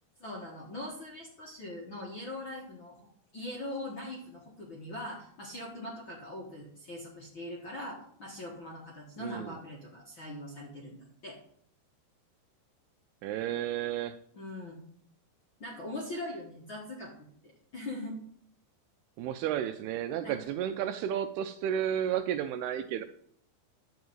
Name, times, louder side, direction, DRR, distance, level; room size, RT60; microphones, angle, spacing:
voice 1, 0.2-2.9 3.3-11.4 14.3-14.8 15.6-17.1 17.4-18.2 20.2-20.4, left 1 dB, 60° left, -3 dB, 1.3 m, -41 dB
voice 2, 9.2-9.5 13.2-14.2 19.2-23.0, right 10 dB, 80° right, 10 dB, 2.4 m, -32 dB
10.5 x 4.7 x 7.9 m, 0.66 s
omnidirectional pair, 4.9 m